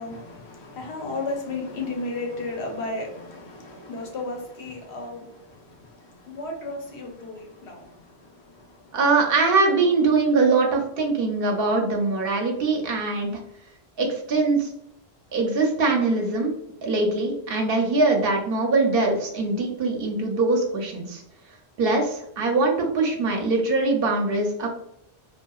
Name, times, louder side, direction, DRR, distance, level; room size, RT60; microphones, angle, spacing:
voice 1, 0.0-8.9, left 2 dB, 90° left, 1.0 m, -34 dB
voice 2, 8.9-13.4 14.0-14.7 15.3-16.5 16.8-21.2 21.8-24.7, right 3 dB, 65° right, 0.8 m, -22 dB
2.7 x 2.3 x 2.3 m
omnidirectional pair, 1.1 m